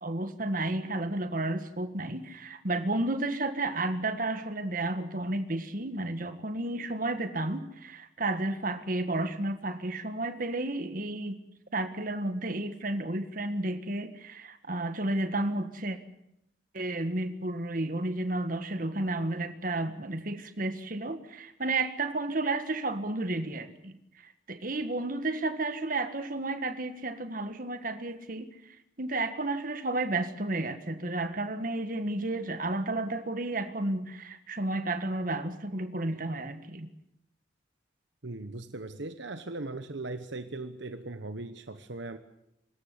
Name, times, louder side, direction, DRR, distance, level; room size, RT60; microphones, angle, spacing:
voice 1, 0.0-11.4 11.7-16.0 16.7-24.0 24.2-36.9, right 2 dB, 45° right, 9 dB, 1.7 m, -32 dB
voice 2, 38.2-42.2, right 2 dB, 70° right, 9 dB, 1.1 m, -39 dB
24.5 x 13.5 x 9.7 m, 0.81 s
head